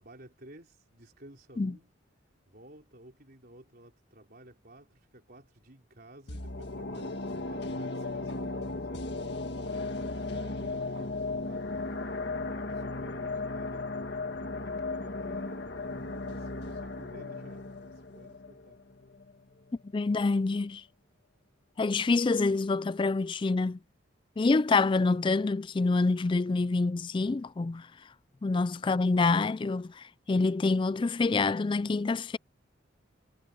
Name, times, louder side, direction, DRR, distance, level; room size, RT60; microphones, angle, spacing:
voice 1, 0.0-1.9 2.5-13.9 14.6-18.8, right 1 dB, 50° right, 4.4 m, -54 dB
sound 1, 6.3-19.4 19.7-19.8, left 2 dB, 55° left, 1.8 m, -36 dB
voice 2, 19.9-20.8 21.8-23.8 24.4-27.9 28.4-32.4, left 3 dB, 25° left, 0.3 m, -26 dB
head